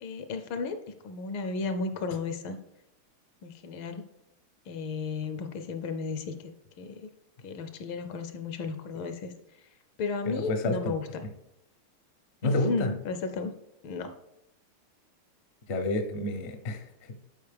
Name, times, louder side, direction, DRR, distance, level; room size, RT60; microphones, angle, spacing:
voice 1, 0.0-0.8 1.0-2.6 3.4-4.0 4.7-7.1 7.4-9.3 10.0-11.2 12.4-13.5 13.8-14.1, left 4 dB, 75° left, 8 dB, 1.4 m, -34 dB
voice 2, 10.2-11.0 12.4-12.9 15.7-17.1, left 2 dB, 55° left, 6 dB, 0.7 m, -29 dB
11.5 x 5.0 x 3.4 m, 0.83 s
omnidirectional pair, 2.4 m